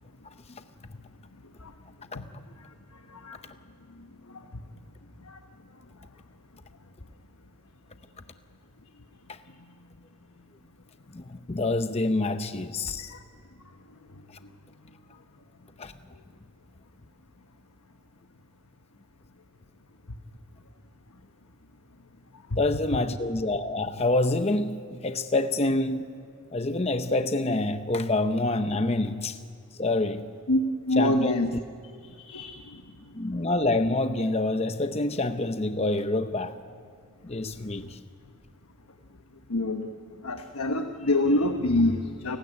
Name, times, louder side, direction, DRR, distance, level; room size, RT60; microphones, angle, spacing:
voice 1, 11.1-13.1 15.8-15.9 22.6-26.1 26.5-29.4 29.8-30.3 31.0-31.4 33.1-36.6 37.2-38.0, left 2 dB, 30° left, 9 dB, 0.7 m, -27 dB
voice 2, 30.9-31.5 32.2-32.6 39.5-40.0 40.2-42.4, left 1 dB, 90° left, 6 dB, 1.2 m, -25 dB
29.0 x 16.5 x 9.8 m, 2.3 s
head